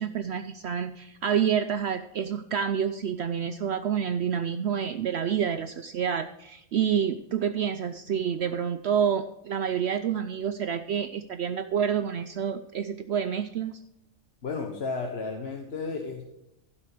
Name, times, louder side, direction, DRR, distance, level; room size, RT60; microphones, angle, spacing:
voice 1, 0.0-13.8, right 8 dB, 65° right, 10 dB, 0.7 m, -28 dB
voice 2, 14.4-16.2, left 4 dB, 50° left, 3 dB, 1.3 m, -33 dB
16.0 x 5.8 x 4.8 m, 0.85 s
omnidirectional pair, 1.4 m